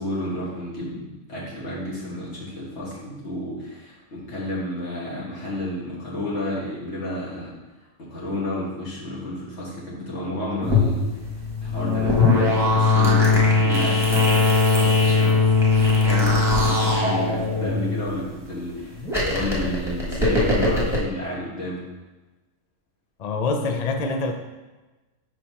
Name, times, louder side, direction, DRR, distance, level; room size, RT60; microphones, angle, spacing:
voice 1, 0.0-7.5 8.0-15.4 16.0-21.8, left 1 dB, 50° left, -6 dB, 1.9 m, -31 dB
sound 1, 10.6-18.3 19.0-21.0, left 3 dB, ahead, 1.3 m, -20 dB
voice 2, 23.2-24.3, left 3 dB, 85° left, 5 dB, 0.3 m, -25 dB
4.6 x 4.3 x 5.6 m, 1.2 s
omnidirectional pair, 1.5 m